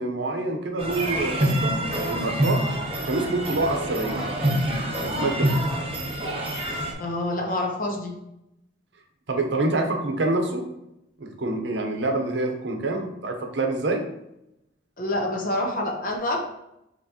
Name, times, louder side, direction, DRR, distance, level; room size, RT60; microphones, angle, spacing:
voice 1, 0.0-1.8 2.0-2.7 3.0-4.2 5.0-5.5 9.3-10.7 11.2-14.1, right 2 dB, 70° right, 3 dB, 0.7 m, -26 dB
sound 1, 0.8-6.9, right 1 dB, 30° right, 0.7 m, -26 dB
voice 2, 7.0-8.1 15.0-16.4, left 1 dB, 45° left, 1 dB, 0.8 m, -27 dB
5.9 x 3.0 x 2.8 m, 0.85 s
head